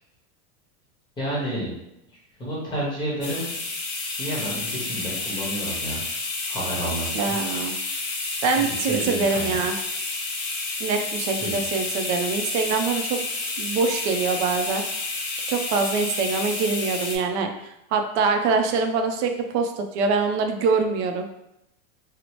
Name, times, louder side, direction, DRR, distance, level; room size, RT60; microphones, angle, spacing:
voice 1, 1.2-1.7 2.4-3.5 4.2-6.0 6.5-7.3 8.6-9.5 11.4-11.5, right 1 dB, 10° left, -5 dB, 0.9 m, -30 dB
sound 1, 3.2-17.2, left 3 dB, 40° left, 0.6 m, -30 dB
voice 2, 7.1-7.7 8.4-9.8 10.8-13.2 13.6-14.8 15.5-21.3, right 4 dB, 65° right, 5 dB, 0.5 m, -24 dB
2.8 x 2.0 x 2.9 m, 0.83 s
supercardioid pair, 150°, 37 cm